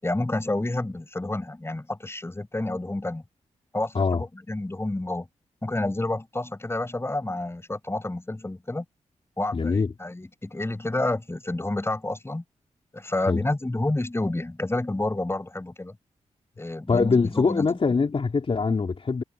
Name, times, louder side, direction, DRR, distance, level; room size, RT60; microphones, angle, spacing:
voice 1, 0.0-3.2 3.7-5.3 5.6-8.8 9.4-12.4 12.9-16.0 16.6-17.7, left 2 dB, 20° left, 5.9 m, -29 dB
voice 2, 9.5-9.9 13.3-13.4 16.9-19.2, left 4 dB, 50° left, 3.5 m, -23 dB
cardioid pair, 60°, 12 cm